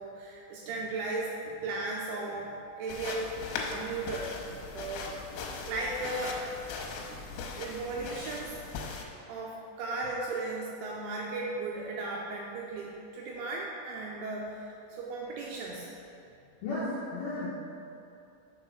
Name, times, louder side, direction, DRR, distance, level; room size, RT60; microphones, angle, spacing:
voice 1, 0.0-3.3 3.6-6.4 7.1-7.3 7.6-8.6 9.3-15.9, right 2 dB, 80° right, -2 dB, 2.8 m, -36 dB
sound 1, 2.9-9.1, left 4 dB, 90° left, 3.3 m, -39 dB
voice 2, 16.6-17.5, left 2 dB, 75° left, -10 dB, 2.3 m, -34 dB
6.9 x 4.8 x 6.2 m, 2.8 s
omnidirectional pair, 5.9 m